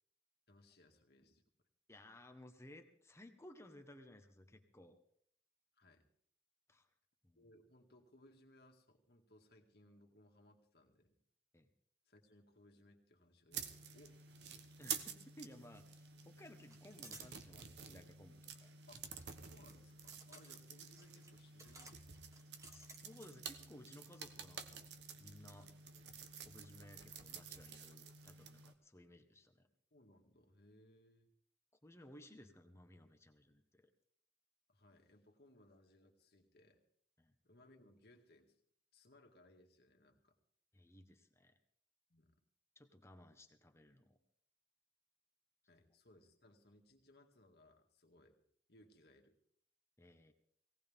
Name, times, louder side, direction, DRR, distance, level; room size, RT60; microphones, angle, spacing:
voice 1, 0.5-1.4 5.7-6.1 7.4-11.2 12.1-14.7 18.9-19.1 19.4-22.4 25.6-25.8 29.9-31.3 34.7-36.8 37.4-38.6 38.9-40.4 42.1-42.4 45.7-48.4 48.7-49.4, left 1 dB, 65° left, 3 dB, 2.1 m, -66 dB
voice 2, 1.9-5.0 6.7-6.9 7.2-7.4 11.5-11.7 14.8-18.7 22.7-24.9 25.2-25.7 26.4-29.7 31.8-33.9 37.2-37.3 40.7-41.6 42.7-44.2 50.0-50.3, left 1 dB, 15° left, 6 dB, 1.3 m, -59 dB
sound 1, 13.5-28.7, right 7 dB, 75° right, 1.1 m, -50 dB
sound 2, 14.8-14.9 15.2-15.9 16.6-17.3 18.6-23.5, right 2 dB, 20° right, 1.6 m, -60 dB
18.5 x 17.5 x 3.7 m, 0.65 s
head